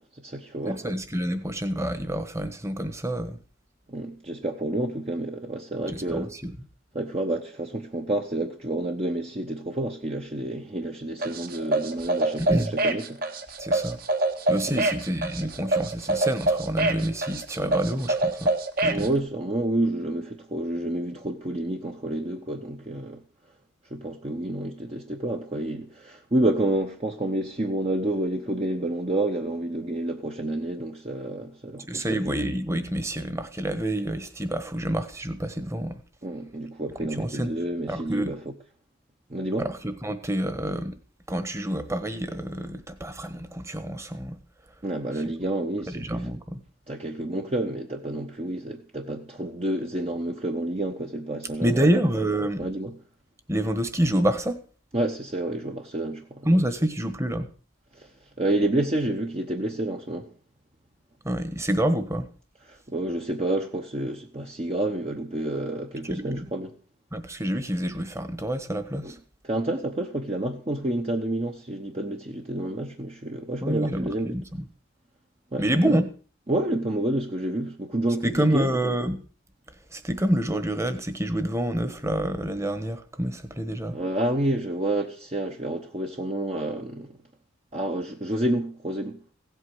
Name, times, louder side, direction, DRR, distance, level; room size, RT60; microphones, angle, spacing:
voice 1, 0.0-0.9 3.9-6.3 6.9-13.2 14.7-14.9 18.9-23.2 23.9-32.3 36.2-38.4 39.3-39.7 44.8-46.3 46.9-52.0 52.6-52.9 54.9-56.5 57.9-58.1 58.4-60.3 62.7-66.7 69.0-69.1 69.4-74.4 75.5-76.0 76.5-78.7 83.9-87.2 87.7-89.2, right 1 dB, 30° right, 0.9 m, -29 dB
voice 2, 0.6-3.4 5.9-6.5 12.4-12.7 13.6-14.0 14.5-18.5 18.8-19.1 31.9-36.0 37.0-37.5 37.9-38.3 39.6-41.0 41.3-44.4 45.2-45.3 45.9-46.6 51.6-52.7 53.5-54.6 56.4-57.5 61.2-62.3 66.0-66.2 67.1-69.2 73.6-74.5 75.6-76.1 78.2-79.2 79.9-84.0, right 1 dB, 15° right, 1.2 m, -27 dB
sound 1, 11.2-19.1, right 2 dB, 50° right, 1.4 m, -25 dB
16.5 x 8.2 x 6.2 m
head